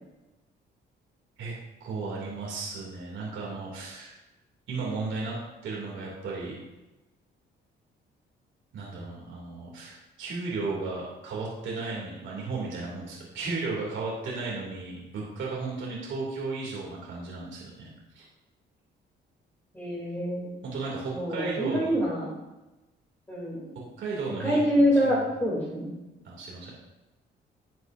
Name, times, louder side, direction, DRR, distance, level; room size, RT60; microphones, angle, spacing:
voice 1, 1.8-4.1 4.7-5.4 5.6-6.6 8.7-17.9 18.1-18.3 20.6-21.9 24.0-25.2 26.2-26.7, right 3 dB, 75° right, -4 dB, 2.6 m, -34 dB
voice 2, 19.7-20.6 21.1-22.3 23.3-23.7 24.4-26.0, equal, 10° left, -6 dB, 2.7 m, -26 dB
11.0 x 7.9 x 2.6 m, 1.0 s
cardioid pair, 90°, 20 cm